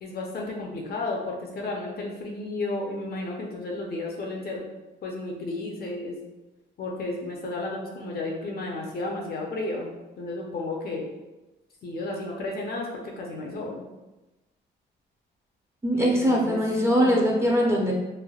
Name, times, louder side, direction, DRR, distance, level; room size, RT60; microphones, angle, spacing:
voice 1, 0.0-4.6 5.0-6.2 6.8-9.9 10.2-11.0 11.8-13.8 15.9-16.6 17.0-17.2, left 2 dB, 50° left, -1 dB, 0.6 m, -33 dB
voice 2, 15.8-17.9, equal, 15° right, -2 dB, 0.6 m, -22 dB
3.2 x 2.0 x 2.3 m, 1.1 s
cardioid pair, 90°, 20 cm